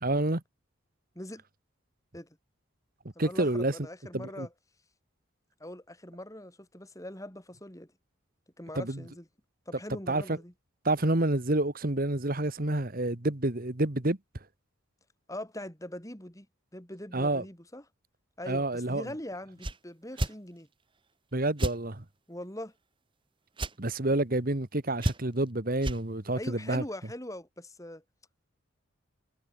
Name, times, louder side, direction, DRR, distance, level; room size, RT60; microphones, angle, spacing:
voice 1, 0.0-0.4 3.2-3.7 4.1-4.5 8.7-9.0 10.1-10.4 10.8-14.2 17.1-17.4 18.5-19.1 21.3-22.0 23.8-26.8, right 2 dB, 45° right, 1.6 m, -28 dB
voice 2, 3.2-4.5 5.6-7.9 8.6-9.3 9.7-10.5 15.3-16.5 16.7-17.8 18.4-20.7 22.3-22.7 26.4-28.0, left 1 dB, 15° left, 4.0 m, -42 dB
sound 1, 19.6-19.8 20.2-20.4 21.6-21.8 23.6-23.8 25.0-25.4 25.8-26.0, right 1 dB, 25° right, 1.6 m, -30 dB
head